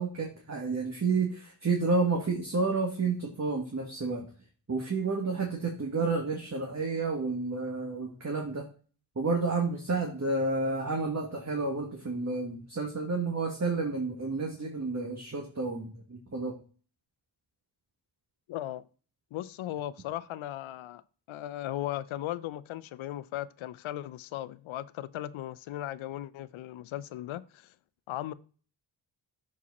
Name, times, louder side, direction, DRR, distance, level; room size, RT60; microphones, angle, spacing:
voice 1, 0.0-4.3 4.7-8.6 9.1-16.5, right 3 dB, 35° right, 1.7 m, -30 dB
voice 2, 18.5-18.8 19.3-21.0 21.3-27.7 28.1-28.3, left 13 dB, 85° left, 0.5 m, -37 dB
7.2 x 4.8 x 4.1 m
cardioid pair, 50°, 46 cm